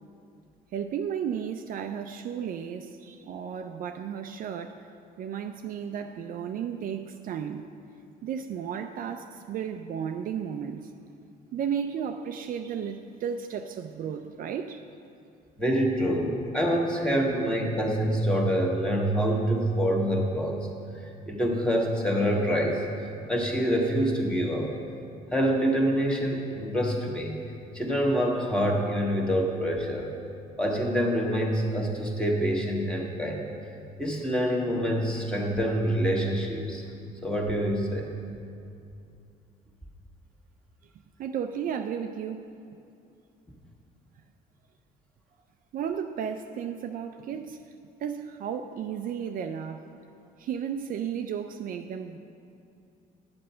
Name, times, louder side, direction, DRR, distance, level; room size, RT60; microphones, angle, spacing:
voice 1, 0.7-4.9 5.2-7.7 8.2-10.9 11.5-14.8 41.2-42.5 45.7-47.6 48.0-49.9 50.4-52.2, right 8 dB, 55° right, 6 dB, 0.5 m, -34 dB
voice 2, 15.6-20.6 21.0-24.7 25.3-27.4 27.7-30.1 30.6-33.4 34.0-36.8 37.2-38.1, equal, 5° left, -1 dB, 1.5 m, -26 dB
9.6 x 7.7 x 5.6 m, 2.5 s
cardioid pair, 110°, 17 cm